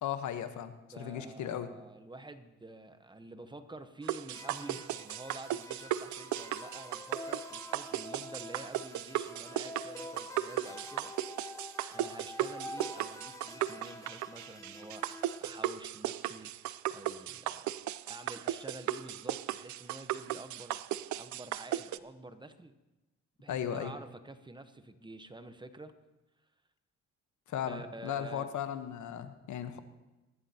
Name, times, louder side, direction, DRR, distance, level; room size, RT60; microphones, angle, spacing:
voice 1, 0.0-1.7 23.5-23.9 27.5-29.8, left 9 dB, 75° left, 9 dB, 1.1 m, -36 dB
voice 2, 0.9-11.1 11.8-17.7 18.1-20.8 21.1-22.7 23.4-25.9 27.6-28.5, right 2 dB, 15° right, 10 dB, 1.0 m, -49 dB
sound 1, 4.1-22.0, right 13 dB, 70° right, 0.5 m, -36 dB
sound 2, 4.3-15.6, left 2 dB, 10° left, 0.7 m, -47 dB
24.0 x 11.0 x 2.9 m, 1.1 s
cardioid pair, 90°, 30 cm